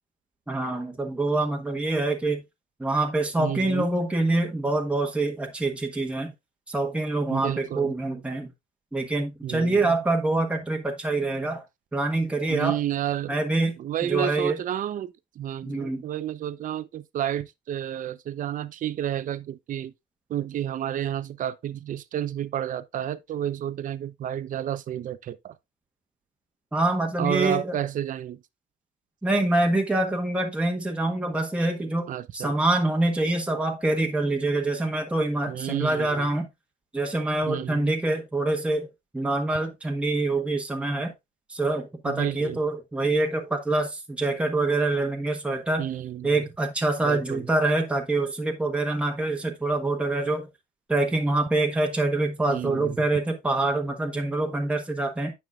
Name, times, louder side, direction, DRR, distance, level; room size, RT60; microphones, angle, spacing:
voice 1, 0.5-2.4 2.8-6.3 6.7-8.5 8.9-11.6 11.9-12.8 13.3-13.8 14.0-14.6 15.6-16.0 26.7-27.8 29.2-32.1 32.3-36.5 36.9-38.9 39.1-41.1 41.5-45.9 46.2-50.5 50.9-55.3, right 2 dB, 5° right, 1.3 m, -25 dB
voice 2, 3.4-3.9 7.3-7.9 9.4-10.0 12.5-13.4 13.8-19.9 20.3-25.6 27.2-28.4 32.1-32.5 35.5-36.3 37.5-37.9 42.0-42.6 45.8-46.3 47.0-47.5 52.5-53.0, right 11 dB, 50° right, 0.7 m, -31 dB
9.3 x 5.8 x 2.4 m
cardioid pair, 110°, 17 cm